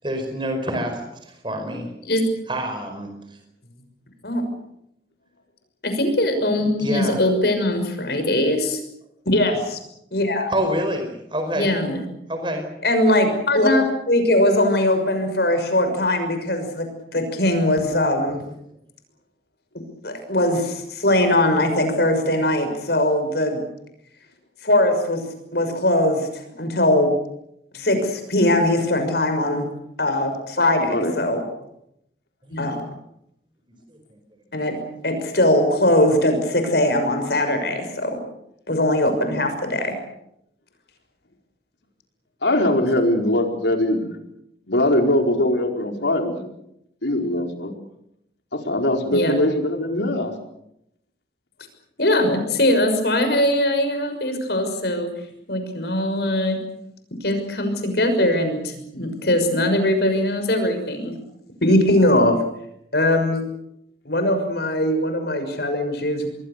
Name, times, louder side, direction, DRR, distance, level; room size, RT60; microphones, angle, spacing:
voice 1, 0.0-1.9 2.5-3.1 6.8-7.2 10.5-11.7 12.3-12.6 26.6-26.7 32.5-32.6 33.9-34.0 42.4-42.5, equal, 25° right, 5 dB, 5.0 m, -27 dB
voice 2, 5.8-8.8 9.3-9.8 10.1-10.5 11.5-12.0 12.8-18.4 20.0-23.6 24.6-25.2 25.5-27.1 27.7-29.7 30.0-31.4 32.5-32.8 34.5-38.2 38.7-39.9 49.1-49.3 52.0-55.1 55.5-56.6 57.2-61.1 61.6-62.4 62.9-63.4 64.0-66.3, left 1 dB, 65° left, 7 dB, 6.1 m, -21 dB
voice 3, 42.4-44.1 44.7-46.5 47.0-47.7 48.5-50.3, left 1 dB, 80° left, 3 dB, 4.6 m, -21 dB
26.5 x 21.5 x 6.8 m, 0.79 s
head